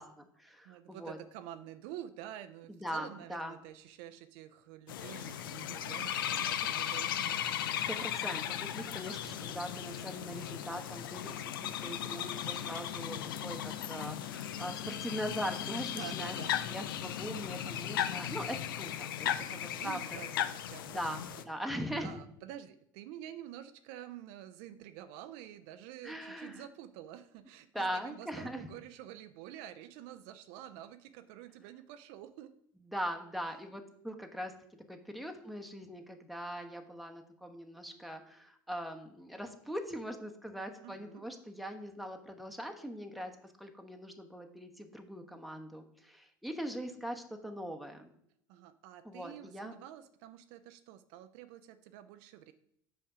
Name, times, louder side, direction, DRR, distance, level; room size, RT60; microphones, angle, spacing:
voice 1, 0.0-1.2 2.7-3.5 7.4-11.4 11.6-16.4 16.7-20.2 20.9-22.2 26.0-26.6 27.7-28.7 32.9-34.6 34.9-43.3 43.6-48.1 49.0-49.7, equal, ahead, 4 dB, 1.0 m, -41 dB
voice 2, 0.6-7.4 16.0-16.6 19.2-21.5 22.0-32.5 40.8-41.2 48.5-52.5, right 11 dB, 65° right, 10 dB, 0.5 m, -49 dB
sound 1, 4.9-21.4, left 10 dB, 80° left, 0.4 m, -37 dB
5.6 x 5.3 x 4.9 m, 0.72 s
hypercardioid pair, 75°, 11 cm